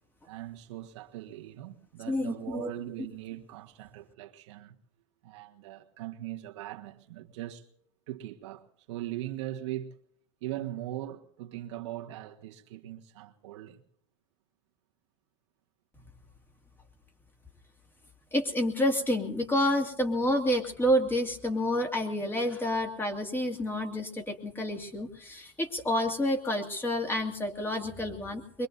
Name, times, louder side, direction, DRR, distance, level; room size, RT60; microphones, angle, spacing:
voice 1, 0.2-4.7 5.2-7.7 8.1-10.0 10.4-13.8, right 14 dB, 70° right, 1.5 m, -40 dB
voice 2, 2.1-2.7 18.3-28.7, left 1 dB, 15° left, 2.5 m, -29 dB
23.5 x 23.0 x 2.7 m
hypercardioid pair, 105°, 16 cm